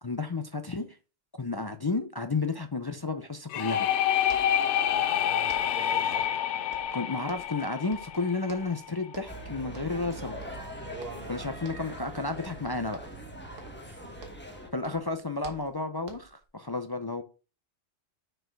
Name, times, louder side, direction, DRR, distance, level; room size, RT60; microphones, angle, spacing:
voice 1, 0.0-0.9 1.4-3.9 6.9-10.4 11.3-13.1 14.7-17.2, left 3 dB, 40° left, 0.3 m, -32 dB
sound 1, 3.5-9.1, left 10 dB, 75° left, 0.9 m, -28 dB
sound 2, 3.9-4.0 4.2-5.2 5.5-6.4 6.7-7.6 7.9-8.8 9.1-9.4 9.7-10.1 10.4-11.3 11.6-12.0 12.3-12.6 12.9-14.6 14.8-16.4, right 4 dB, 85° right, 1.6 m, -51 dB
voice 2, 5.2-6.4 10.8-11.4 13.8-14.2, right 3 dB, 50° right, 2.1 m, -44 dB
sound 3, 9.3-14.7, right 1 dB, 10° left, 1.2 m, -42 dB
6.5 x 4.5 x 4.6 m
omnidirectional pair, 1.3 m